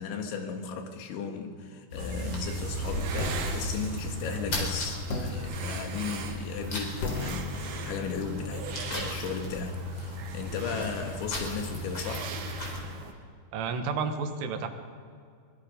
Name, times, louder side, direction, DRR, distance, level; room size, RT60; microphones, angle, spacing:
voice 1, 0.0-12.3, left 6 dB, 75° left, 4 dB, 4.0 m, -36 dB
sound 1, 1.9-12.8, left 1 dB, 30° left, 4.2 m, -36 dB
sound 2, 2.0-13.1, right 5 dB, 65° right, 3.1 m, -40 dB
sound 3, 3.2-4.5 5.1-10.8, left 2 dB, 60° left, 1.6 m, -39 dB
voice 2, 13.5-14.7, right 5 dB, 90° right, 6 dB, 4.0 m, -31 dB
24.5 x 21.5 x 5.2 m, 2.2 s
omnidirectional pair, 5.4 m